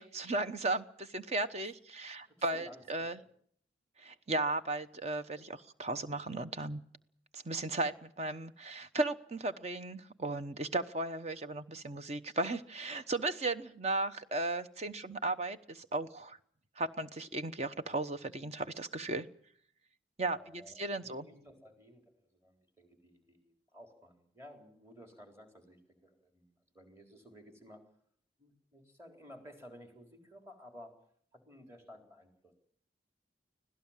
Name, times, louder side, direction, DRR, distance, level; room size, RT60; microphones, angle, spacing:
voice 1, 0.0-3.2 4.0-6.8 7.3-16.4 16.8-19.3 20.2-21.3, right 2 dB, 40° right, 10 dB, 1.0 m, -36 dB
voice 2, 2.2-3.3 20.3-22.0 22.4-26.5 26.7-27.8 28.4-31.0 31.3-32.5, equal, 15° right, 4 dB, 3.9 m, -55 dB
25.0 x 17.0 x 7.4 m, 0.64 s
head